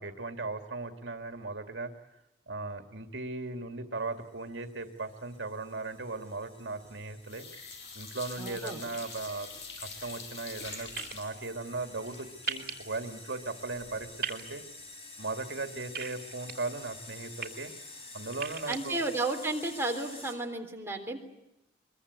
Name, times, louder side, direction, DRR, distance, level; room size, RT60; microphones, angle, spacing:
voice 1, 0.0-2.2 2.5-7.5 8.0-9.5 9.8-14.6 15.2-17.7 18.1-19.0, right 3 dB, 75° right, 6 dB, 2.1 m, -38 dB
sound 1, 4.3-20.3, left 3 dB, 35° left, 5.2 m, -50 dB
sound 2, 6.6-7.0 7.3-14.1 14.5-14.6 14.9-15.0, left 4 dB, 70° left, 5.7 m, -46 dB
voice 2, 8.4-8.8 18.7-21.2, right 2 dB, 15° right, 2 dB, 3.6 m, -33 dB
sound 3, 11.0-11.1 12.5-12.7 14.2-14.4 15.9-16.5 17.2-17.5 18.3-18.8, right 6 dB, 55° right, 3.4 m, -35 dB
23.5 x 23.0 x 9.6 m, 0.88 s
head